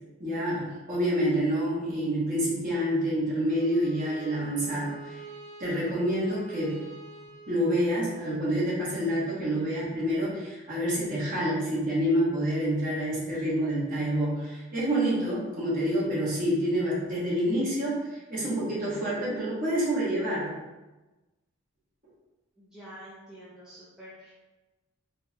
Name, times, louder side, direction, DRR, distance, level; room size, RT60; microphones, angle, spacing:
voice 1, 0.2-5.2 5.6-6.8 7.5-20.5, equal, 40° right, -7 dB, 1.1 m, -28 dB
Bowed string instrument, 3.4-8.4, right 5 dB, 80° right, 1.1 m, -47 dB
voice 2, 22.6-24.3, equal, 5° right, -10 dB, 0.5 m, -47 dB
4.0 x 2.4 x 2.7 m, 1.1 s
head